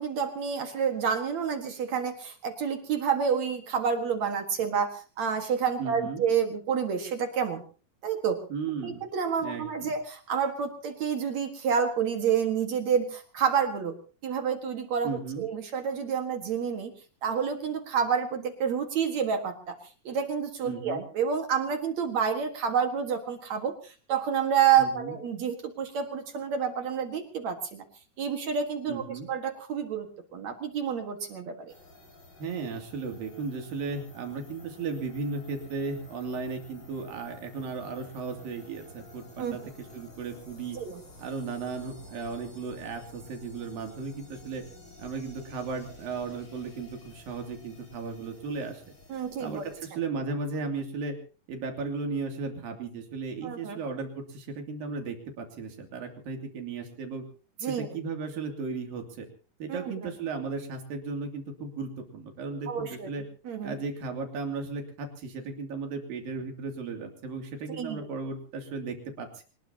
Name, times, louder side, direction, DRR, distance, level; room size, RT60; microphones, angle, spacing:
voice 1, 0.0-7.6 8.0-8.4 8.8-13.9 14.2-16.9 17.2-19.8 20.0-27.8 28.2-30.1 30.3-31.7 39.4-39.6 40.7-41.0 49.1-49.6 53.4-53.8 57.6-57.9 59.7-60.1 62.7-63.1 63.5-63.8 67.8-68.1, right 7 dB, 55° right, 6 dB, 2.8 m, -29 dB
voice 2, 5.8-6.2 8.5-9.0 9.4-9.9 15.0-15.5 20.6-21.0 24.8-25.2 28.9-29.3 32.4-40.8 41.2-44.6 45.0-48.8 49.4-51.2 51.5-57.2 57.6-59.3 59.6-63.2 63.6-69.4, right 4 dB, 85° right, 4 dB, 4.5 m, -35 dB
sound 1, 31.7-49.8, left 1 dB, 30° left, 5.5 m, -52 dB
25.5 x 20.0 x 2.9 m, 0.37 s
omnidirectional pair, 3.9 m